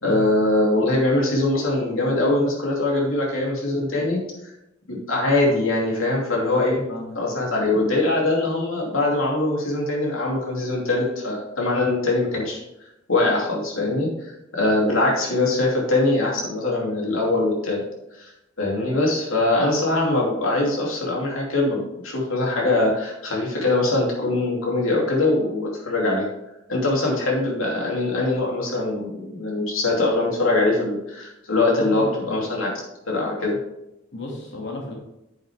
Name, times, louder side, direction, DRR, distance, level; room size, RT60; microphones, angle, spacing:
voice 1, 0.0-4.2 4.9-6.8 7.1-12.6 13.1-17.8 18.2-26.3 26.7-32.7 33.1-33.6, left 2 dB, 90° left, -2 dB, 2.9 m, -22 dB
voice 2, 6.9-7.4 31.5-32.4 34.1-34.9, left 2 dB, 60° left, -1 dB, 2.4 m, -33 dB
9.8 x 8.2 x 3.6 m, 0.90 s
head